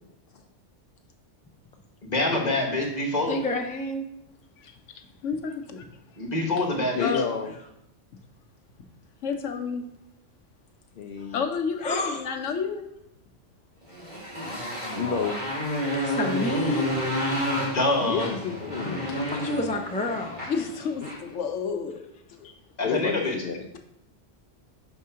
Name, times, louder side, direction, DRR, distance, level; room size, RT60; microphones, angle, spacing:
voice 1, 2.0-3.4 6.2-7.1 17.5-18.3 22.8-23.4, left 2 dB, 35° left, -1 dB, 1.3 m, -26 dB
voice 2, 3.3-4.0 7.1-7.2 11.2-11.4 11.8-12.3 15.9-16.9 19.2-20.5 22.4-22.6, left 2 dB, 10° left, 3 dB, 0.4 m, -30 dB
voice 3, 5.2-5.8 7.0-7.2 9.2-9.8 11.3-12.8 20.5-22.0, left 6 dB, 80° left, 4 dB, 1.1 m, -30 dB
voice 4, 6.9-7.5 11.0-11.5 15.0-15.5 18.0-19.2 21.0-21.2 22.3-22.5 22.8-23.7, left 6 dB, 60° left, 4 dB, 0.6 m, -31 dB
Motorcycle, 13.9-21.3, equal, 35° right, 2.2 m, -30 dB
5.9 x 3.6 x 5.6 m, 0.81 s
omnidirectional pair, 1.3 m